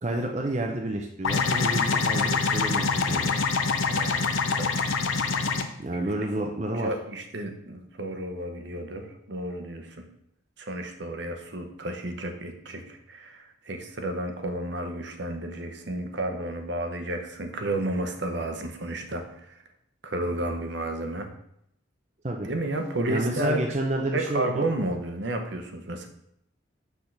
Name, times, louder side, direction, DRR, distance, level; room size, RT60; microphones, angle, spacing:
voice 1, 0.0-3.3 5.8-6.9 22.2-22.5 23.1-24.6, right 1 dB, 35° right, 1 dB, 0.6 m, -30 dB
sound 1, 1.2-5.6, left 4 dB, 90° left, 0.7 m, -25 dB
voice 2, 3.9-4.8 5.6-6.0 6.4-6.5 6.8-10.1 10.6-19.6 20.0-21.3 22.4-23.8 24.1-26.1, right 1 dB, 60° right, 5 dB, 0.9 m, -32 dB
6.5 x 3.5 x 5.8 m, 0.74 s
head